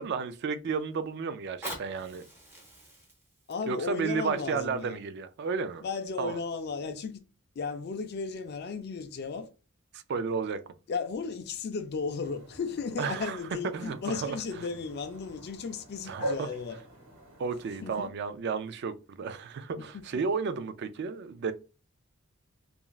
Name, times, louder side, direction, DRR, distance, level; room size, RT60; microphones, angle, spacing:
voice 1, 0.0-2.3 3.7-5.9 6.2-6.4 9.9-10.6 13.0-13.4 13.7-14.4 16.1-16.5 17.4-21.5, right 5 dB, 50° right, 0.3 m, -32 dB
Fire, 1.4-6.3 7.0-7.1, right 1 dB, 10° right, 0.7 m, -46 dB
voice 2, 3.5-5.0 5.8-7.2 7.6-9.5 10.9-16.8 17.8-18.1 19.8-20.1, left 5 dB, 50° left, 0.4 m, -35 dB
sound 1, 12.2-18.1, right 1 dB, 70° right, 1.1 m, -43 dB
3.0 x 2.4 x 2.4 m
head